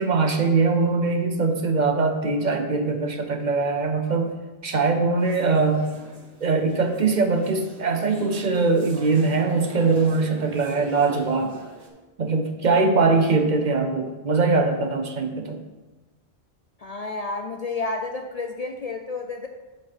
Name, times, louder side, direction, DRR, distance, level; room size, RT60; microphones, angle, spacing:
voice 1, 0.0-4.3 4.6-5.9 6.4-11.5 12.2-15.6, right 4 dB, 50° right, 5 dB, 0.8 m, -22 dB
sound 1, 5.2-11.9, right 2 dB, 85° right, 1.4 m, -43 dB
voice 2, 16.8-19.5, left 3 dB, 50° left, 4 dB, 0.5 m, -30 dB
7.7 x 4.4 x 5.8 m, 1.2 s
omnidirectional pair, 1.1 m